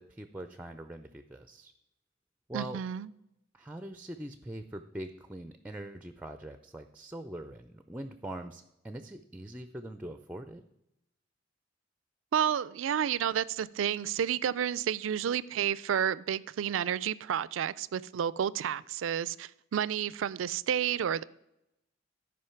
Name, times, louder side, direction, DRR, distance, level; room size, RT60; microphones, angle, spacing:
voice 1, 0.0-1.7 2.5-2.8 3.5-10.6, right 1 dB, 10° right, 0.4 m, -43 dB
voice 2, 2.5-3.1 12.3-21.2, right 9 dB, 85° right, 0.4 m, -30 dB
13.0 x 5.2 x 5.7 m
head